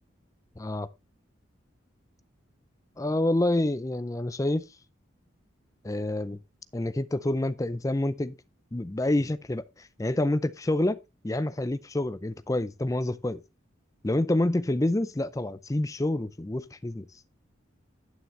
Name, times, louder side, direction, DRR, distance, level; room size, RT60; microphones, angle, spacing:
voice 1, 0.6-0.9 3.0-4.7 5.8-6.4 6.7-8.4 8.7-11.0 11.2-13.4 14.0-17.1, left 1 dB, 15° left, 0.4 m, -27 dB
9.4 x 8.7 x 3.2 m
head